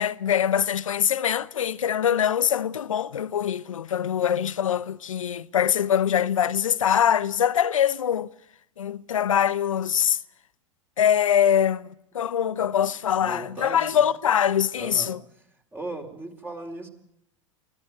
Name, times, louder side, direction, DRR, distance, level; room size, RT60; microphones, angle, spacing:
voice 1, 0.0-8.3 8.8-10.2 11.0-11.9 12.1-15.2, left 9 dB, 85° left, 0.8 m, -23 dB
voice 2, 13.2-14.1 14.8-15.1 15.7-16.9, right 2 dB, 15° right, 4.1 m, -37 dB
24.5 x 17.0 x 8.1 m
hypercardioid pair, 100°, 16 cm